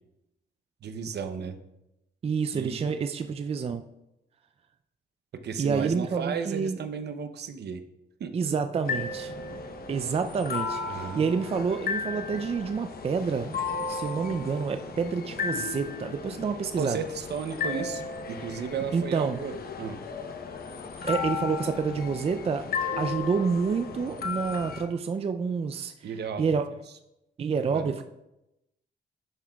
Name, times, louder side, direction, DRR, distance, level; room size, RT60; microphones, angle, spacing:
voice 1, 0.8-1.6 2.5-2.9 5.3-7.8 8.2-8.3 10.9-11.2 16.8-20.0 26.0-26.6 27.7-28.0, right 6 dB, 65° right, 9 dB, 0.7 m, -34 dB
voice 2, 2.2-3.8 5.6-6.8 8.3-9.3 9.9-17.0 18.9-19.4 21.0-22.6 23.0-26.1 26.4-26.6 27.4-28.0, right 5 dB, 35° right, 8 dB, 0.4 m, -28 dB
sound 1, 8.8-24.8, left 5 dB, 55° left, 0.9 m, -35 dB
10.5 x 5.8 x 2.3 m, 0.89 s
cardioid pair, 85°, 18 cm